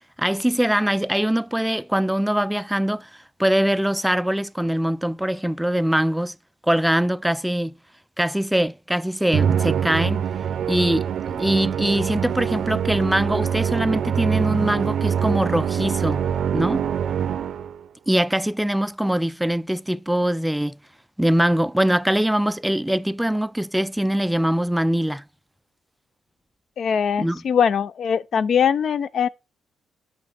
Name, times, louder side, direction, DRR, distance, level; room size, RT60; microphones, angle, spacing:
voice 1, 0.2-3.1 3.4-6.4 6.6-7.7 8.2-10.2 10.7-16.2 16.5-16.8 18.1-20.8 21.2-25.2 27.2-27.4, right 1 dB, 5° right, 0.4 m, -22 dB
Musical instrument, 9.3-17.9, right 8 dB, 65° right, 0.6 m, -24 dB
voice 2, 26.8-29.3, left 7 dB, 55° left, 0.6 m, -21 dB
9.1 x 6.0 x 4.3 m
cardioid pair, 90°, 0 cm